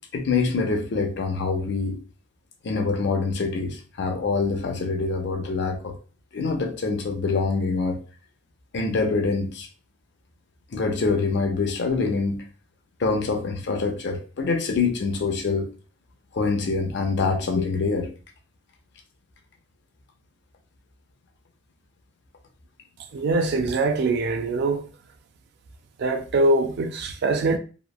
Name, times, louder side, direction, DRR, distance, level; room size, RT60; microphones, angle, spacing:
voice 1, 0.1-2.0 2.6-6.0 6.3-8.0 8.7-9.7 10.7-12.4 13.0-15.7 16.3-18.1, left 4 dB, 65° left, 0.5 m, -25 dB
voice 2, 23.1-24.9 26.0-27.6, right 2 dB, 60° right, 0.3 m, -23 dB
2.9 x 2.0 x 2.2 m
head